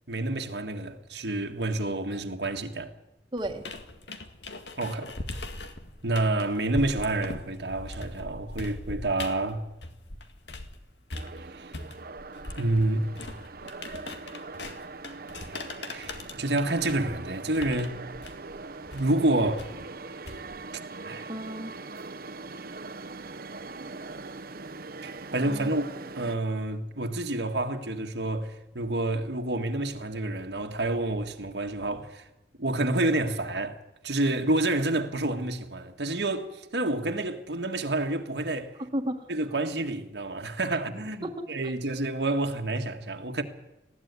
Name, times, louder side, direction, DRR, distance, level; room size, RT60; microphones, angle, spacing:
voice 1, 0.1-2.9 4.8-5.1 6.0-9.6 11.5-11.7 12.6-13.1 15.9-18.0 18.9-19.7 21.0-21.3 25.0-32.2 32.6-38.7 39.3-43.4, right 2 dB, 75° right, 1.7 m, -29 dB
voice 2, 3.3-3.6 21.3-21.7 25.4-25.7 38.8-39.3 41.2-41.7, right 1 dB, 25° right, 1.6 m, -33 dB
sound 1, 3.4-10.8 11.1-20.7, left 2 dB, 80° left, 1.9 m, -41 dB
sound 2, 11.1-26.4, right 3 dB, 55° right, 1.0 m, -42 dB
19.5 x 15.0 x 9.6 m
head